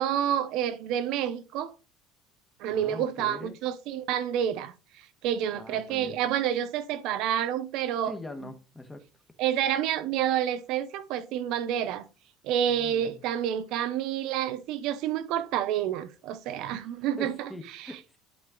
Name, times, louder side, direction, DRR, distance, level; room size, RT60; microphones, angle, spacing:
voice 1, 0.0-1.7 2.6-8.1 9.4-12.1 12.4-17.9, right 10 dB, 65° right, 0.8 m, -29 dB
voice 2, 2.6-3.6 5.5-6.2 8.0-9.0 12.7-13.2 16.6-16.9 17.2-18.2, left 2 dB, 5° left, 1.4 m, -43 dB
11.0 x 4.2 x 3.8 m
cardioid pair, 135°, 0 cm